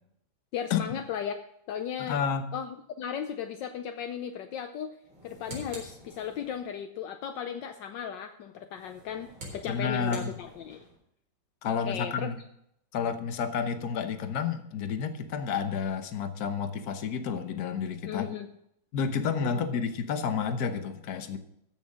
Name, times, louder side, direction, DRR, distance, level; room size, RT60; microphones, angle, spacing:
voice 1, 0.5-1.4 1.7-2.2 2.5-4.9 5.2-10.8 11.9-12.3 18.0-18.5 19.4-19.6, left 8 dB, 75° left, 7 dB, 1.3 m, -36 dB
voice 2, 2.0-2.5 9.7-10.3 11.6-12.4 12.9-18.3 18.9-21.4, left 6 dB, 55° left, 9 dB, 1.4 m, -30 dB
sound 1, 5.0-6.7 8.7-11.0, right 1 dB, 85° right, 4.9 m, -47 dB
14.5 x 6.3 x 6.2 m, 0.76 s
omnidirectional pair, 2.1 m